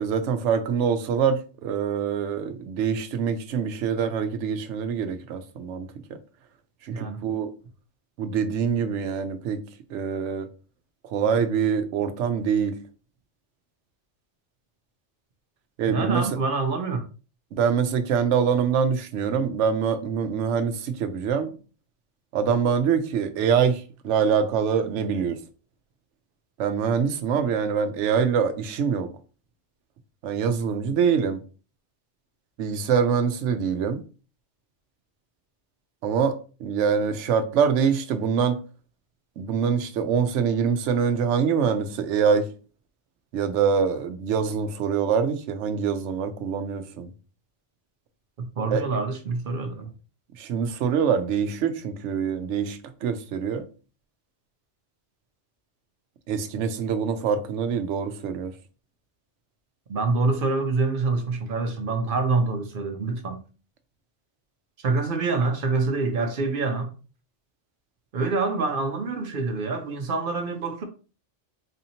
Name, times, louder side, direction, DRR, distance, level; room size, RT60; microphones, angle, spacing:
voice 1, 0.0-5.9 6.8-7.5 8.2-9.6 9.9-10.5 11.1-12.8 15.8-16.3 17.5-21.5 22.3-25.4 26.6-29.1 30.2-31.4 32.6-34.0 36.0-38.6 39.4-42.5 43.3-47.1 48.7-48.8 50.4-53.7 56.3-58.5, right 6 dB, 85° right, 0.9 m, -24 dB
voice 2, 6.9-7.2 15.9-17.0 48.4-49.9 59.9-63.4 64.8-66.9 68.1-70.8, right 3 dB, 55° right, 0.8 m, -26 dB
4.2 x 2.8 x 2.7 m
omnidirectional pair, 1.2 m